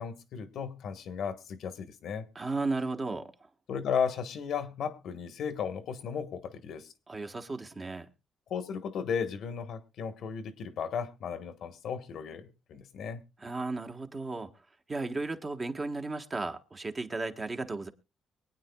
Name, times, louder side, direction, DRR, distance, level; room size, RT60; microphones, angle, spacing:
voice 1, 0.0-2.3 3.7-6.9 8.5-13.2, left 7 dB, 70° left, 1.3 m, -35 dB
voice 2, 2.3-3.3 7.1-8.1 13.4-14.5 14.9-17.9, right 3 dB, 30° right, 1.4 m, -34 dB
23.5 x 9.1 x 2.3 m
cardioid pair, 90°, 0 cm